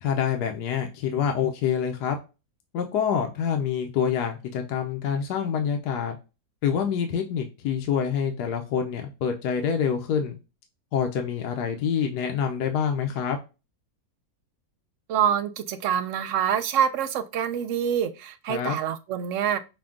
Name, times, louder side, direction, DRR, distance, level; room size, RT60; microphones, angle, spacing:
voice 1, 0.0-2.2 2.7-6.2 6.6-10.4 10.9-13.4 18.5-18.8, left 7 dB, 75° left, 1.2 m, -26 dB
voice 2, 15.1-19.6, right 8 dB, 75° right, 0.7 m, -26 dB
6.0 x 2.2 x 3.6 m
omnidirectional pair, 1.8 m